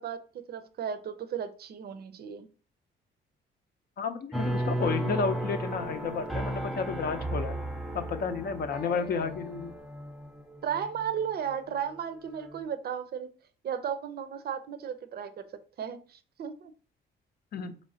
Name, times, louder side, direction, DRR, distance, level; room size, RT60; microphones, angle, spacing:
voice 1, 0.0-2.5 10.6-13.3 13.6-15.4 15.8-16.7, right 8 dB, 50° right, 0.5 m, -35 dB
voice 2, 4.0-7.6 7.9-9.7 17.5-17.8, left 5 dB, 50° left, 0.5 m, -32 dB
sound 1, 4.3-11.5 12.0-12.6, right 1 dB, ahead, 0.5 m, -34 dB
4.2 x 3.1 x 2.7 m
cardioid pair, 90°, 20 cm